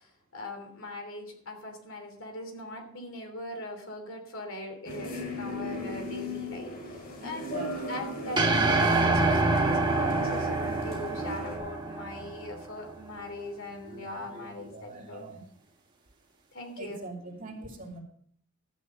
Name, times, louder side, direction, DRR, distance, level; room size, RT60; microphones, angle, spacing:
voice 1, 0.0-15.3 16.5-17.0, left 1 dB, 65° left, 4 dB, 3.1 m, -41 dB
sound 1, 4.8-11.6, left 1 dB, 45° left, 4.6 m, -37 dB
voice 2, 7.2-7.9 13.9-15.4 16.8-18.0, right 2 dB, 40° right, -1 dB, 2.7 m, -43 dB
sound 2, 8.4-12.7, right 3 dB, 20° right, 1.3 m, -26 dB
12.5 x 9.0 x 5.2 m, 0.62 s
head